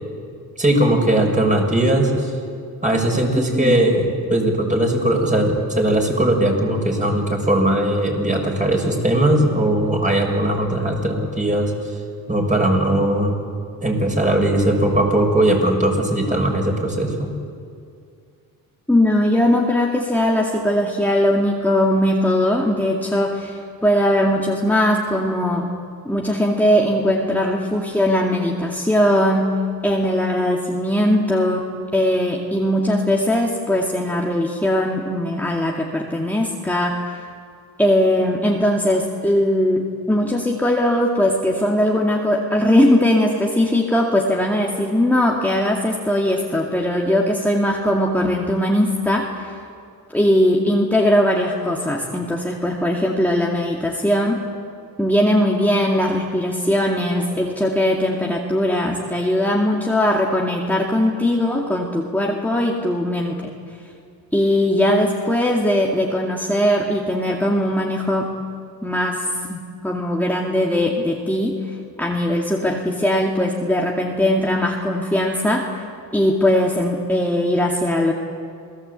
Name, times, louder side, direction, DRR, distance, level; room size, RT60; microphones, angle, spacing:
voice 1, 0.6-2.3 2.8-11.7 12.3-13.3 13.8-17.3, right 1 dB, 20° right, 1 dB, 6.5 m, -19 dB
voice 2, 18.9-25.7 26.1-29.5 29.8-37.2 37.8-49.6 50.1-54.4 55.0-63.5 64.3-68.3 68.8-69.6 69.8-75.7 76.1-78.1, left 1 dB, 5° left, -1 dB, 2.3 m, -20 dB
28.0 x 19.0 x 8.4 m, 2.3 s
cardioid pair, 85°, 38 cm